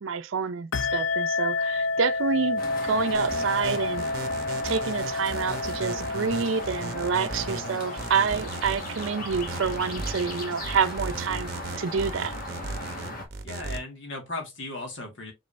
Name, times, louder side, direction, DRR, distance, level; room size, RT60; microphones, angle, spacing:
voice 1, 0.0-4.1 4.6-11.5 11.8-12.4, right 6 dB, 75° right, 0.5 m, -28 dB
sound 1, 0.7-8.9, left 3 dB, 85° left, 0.4 m, -30 dB
sound 2, 2.6-13.3, left 1 dB, 45° left, 1.5 m, -37 dB
sound 3, 3.1-13.8, right 2 dB, 50° right, 0.8 m, -36 dB
voice 2, 13.4-15.3, left 2 dB, 65° left, 1.8 m, -36 dB
5.3 x 3.7 x 2.6 m
head